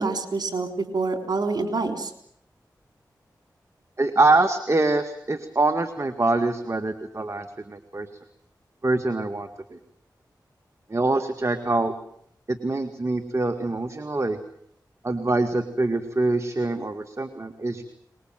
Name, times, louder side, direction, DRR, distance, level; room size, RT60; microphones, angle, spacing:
voice 1, 0.0-2.1, right 3 dB, 65° right, 6 dB, 3.9 m, -26 dB
voice 2, 4.0-8.1 8.8-9.8 10.9-11.9 12.5-14.4 15.0-17.8, right 2 dB, 40° right, 7 dB, 1.9 m, -24 dB
24.0 x 21.5 x 7.6 m, 0.68 s
cardioid pair, 45°, 7 cm